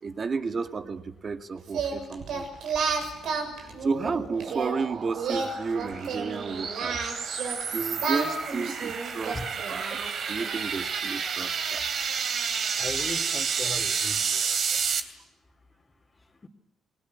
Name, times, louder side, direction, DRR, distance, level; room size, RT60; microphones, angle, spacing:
voice 1, 0.0-2.4 3.6-9.4 9.7-11.8, right 4 dB, 40° right, 7 dB, 2.2 m, -32 dB
Singing, 1.7-4.7 5.1-7.6 8.0-10.6, right 5 dB, 75° right, 6.8 m, -32 dB
sound 1, 3.3-15.0, right 6 dB, 60° right, 2.9 m, -31 dB
voice 2, 12.8-14.6, left 3 dB, 25° left, -1 dB, 3.2 m, -37 dB
28.5 x 20.5 x 9.8 m, 0.95 s
cardioid pair, 90°, 0 cm